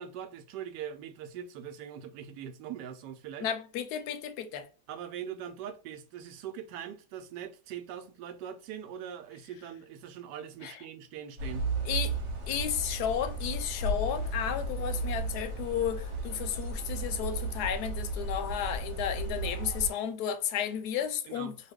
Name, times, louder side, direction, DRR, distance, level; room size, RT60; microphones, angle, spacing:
voice 1, 0.0-3.5 4.9-11.7 21.3-21.6, right 9 dB, 75° right, 1.2 m, -42 dB
voice 2, 3.4-4.7 10.6-10.7 11.9-12.2 12.5-21.5, left 9 dB, 70° left, 1.0 m, -33 dB
sound 1, 11.4-19.9, right 2 dB, 45° right, 1.2 m, -34 dB
3.0 x 2.2 x 3.4 m
omnidirectional pair, 1.9 m